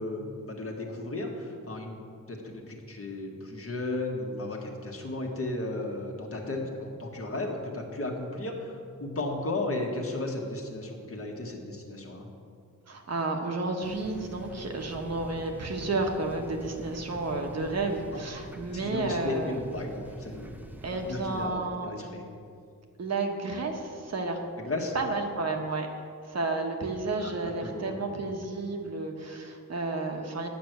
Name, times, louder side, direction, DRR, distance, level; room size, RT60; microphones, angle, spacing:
voice 1, 0.0-2.0 2.3-12.3 18.1-18.2 18.7-20.5 21.0-22.2 24.6-24.9 27.2-27.9, left 2 dB, 40° left, 0 dB, 1.5 m, -34 dB
voice 2, 12.9-19.6 20.8-22.0 23.0-24.4 24.9-25.9 26.2-30.5, right 3 dB, 50° right, 3 dB, 1.1 m, -31 dB
sound 1, 13.8-21.5, right 2 dB, 5° right, 0.6 m, -45 dB
9.3 x 6.1 x 7.9 m, 2.4 s
wide cardioid pair, 145°, 33 cm